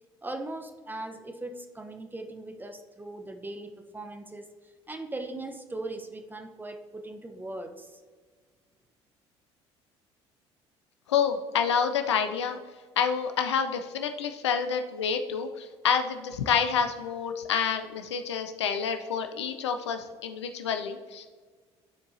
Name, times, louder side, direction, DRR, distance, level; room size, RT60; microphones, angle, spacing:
voice 1, 0.2-4.5 4.9-8.0, right 2 dB, 15° right, 5 dB, 0.9 m, -39 dB
voice 2, 11.1-12.6 13.0-21.3, left 7 dB, 80° left, 7 dB, 0.5 m, -28 dB
12.5 x 4.6 x 2.7 m, 1.5 s
figure-of-eight pair, 55°, 14 cm